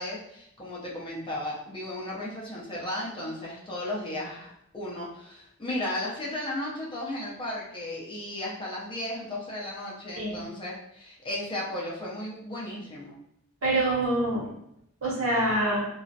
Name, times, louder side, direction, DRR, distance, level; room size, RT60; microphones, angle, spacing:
voice 1, 0.0-13.1, left 1 dB, 25° left, -5 dB, 0.5 m, -35 dB
voice 2, 10.2-10.5 13.6-14.5 15.0-15.8, right 1 dB, 70° right, -4 dB, 0.9 m, -25 dB
2.3 x 2.0 x 2.6 m, 0.76 s
head